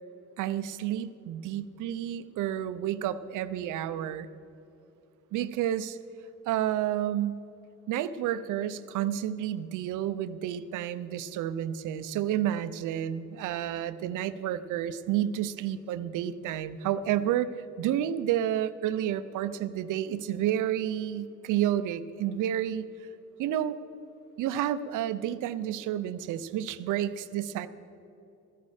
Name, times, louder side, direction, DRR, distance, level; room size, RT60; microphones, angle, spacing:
voice 1, 0.4-4.3 5.3-6.0 6.5-7.4 7.9-17.5 17.8-22.9 23.4-23.8 24.4-27.7, right 11 dB, 85° right, 13 dB, 0.6 m, -30 dB
14.0 x 13.0 x 4.8 m, 2.9 s
cardioid pair, 90°, 30 cm